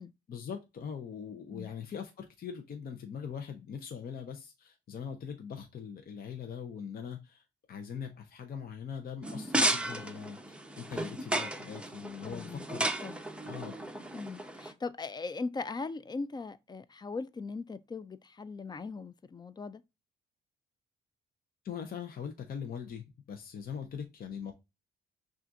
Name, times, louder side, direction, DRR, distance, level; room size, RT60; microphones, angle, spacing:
voice 1, 0.3-12.9 13.4-13.8 21.6-24.5, left 7 dB, 50° left, 0.7 m, -41 dB
sound 1, 9.2-14.7, right 1 dB, 5° right, 0.7 m, -34 dB
voice 2, 12.2-12.6 13.0-13.2 14.1-19.8, left 4 dB, 20° left, 0.4 m, -39 dB
5.9 x 2.5 x 2.5 m
cardioid pair, 90°, 20 cm